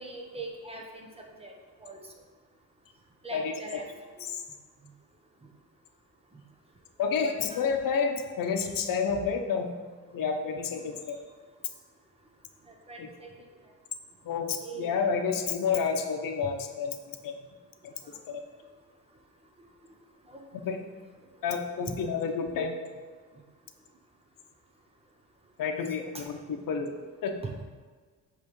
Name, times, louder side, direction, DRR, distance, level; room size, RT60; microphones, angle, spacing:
voice 1, 0.0-1.5 1.8-2.0 3.2-3.9 4.2-4.3 5.4-5.5 7.2-7.6 10.7-10.9 12.7-13.5 14.6-14.9 18.1-18.2 20.3-20.4 21.9-22.0 26.0-26.2 26.8-26.9 27.4-27.5, right 3 dB, 20° right, 1 dB, 0.8 m, -42 dB
voice 2, 3.3-3.8 4.2-4.4 7.0-9.7 10.1-11.2 13.0-13.1 14.2-17.0 17.2-17.3 17.8-17.9 18.3-18.4 20.5-20.8 21.4-22.8 25.6-26.9 27.2-27.4, left 6 dB, 85° left, 5 dB, 0.8 m, -30 dB
8.1 x 3.3 x 5.3 m, 1.5 s
wide cardioid pair, 160°, 33 cm